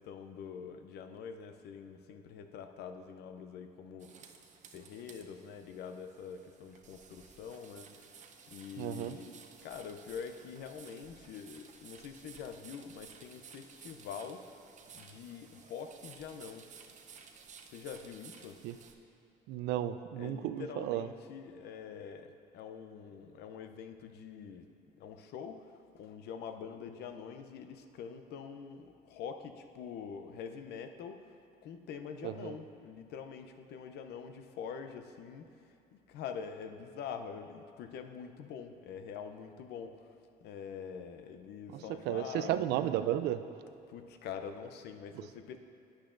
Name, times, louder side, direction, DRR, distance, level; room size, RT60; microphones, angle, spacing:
voice 1, 0.0-4.3 4.7-8.2 8.5-14.5 14.9-16.7 17.7-18.6 20.2-24.7 25.0-35.7 36.1-42.6 43.9-45.6, left 7 dB, 75° left, 7 dB, 0.6 m, -45 dB
sound 1, 4.0-18.9, right 6 dB, 45° right, 0.7 m, -55 dB
voice 2, 8.8-9.2 18.6-18.8 19.5-21.1 32.2-32.5 41.7-43.4 45.2-45.3, right 12 dB, 85° right, 11 dB, 0.4 m, -34 dB
11.5 x 8.8 x 2.6 m, 2.6 s
cardioid pair, 110°, 17 cm